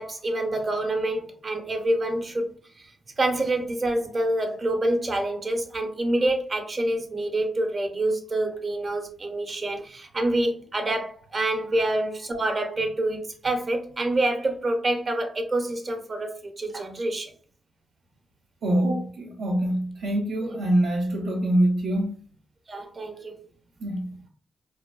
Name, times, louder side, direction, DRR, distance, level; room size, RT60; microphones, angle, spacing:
voice 1, 0.0-2.5 2.8-2.9 3.2-17.3 20.4-20.5 22.7-23.4, right 1 dB, 45° right, 0.6 m, -27 dB
voice 2, 18.6-22.2 23.8-24.1, right 1 dB, 90° right, 0.5 m, -24 dB
2.4 x 2.2 x 2.3 m
cardioid pair, 60°, 0 cm